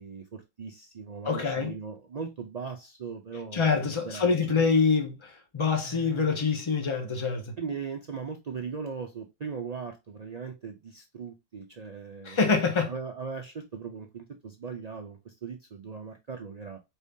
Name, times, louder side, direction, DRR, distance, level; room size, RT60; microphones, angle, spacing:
voice 1, 0.0-3.6 4.0-4.6 5.8-6.4 7.6-12.4 12.9-16.8, right 5 dB, 65° right, 0.4 m, -39 dB
voice 2, 1.2-1.8 3.5-7.5 12.2-12.9, left 5 dB, 25° left, 0.8 m, -25 dB
4.5 x 2.7 x 3.5 m
omnidirectional pair, 1.4 m